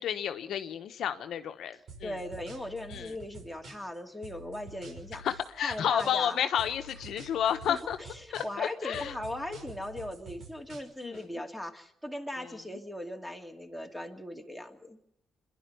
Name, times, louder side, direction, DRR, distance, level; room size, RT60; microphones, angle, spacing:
voice 1, 0.0-2.1 2.9-3.1 5.2-8.0 8.3-9.1 11.0-11.2, left 9 dB, 70° left, 9 dB, 1.1 m, -31 dB
sound 1, 1.9-4.0 4.2-6.3 6.6-8.7 8.9-11.2, right 2 dB, 70° right, 5.8 m, -48 dB
voice 2, 2.0-5.3 5.6-6.5 7.7-15.0, left 1 dB, ahead, 4 dB, 2.4 m, -39 dB
25.0 x 11.5 x 9.4 m, 0.75 s
cardioid pair, 90°, 0 cm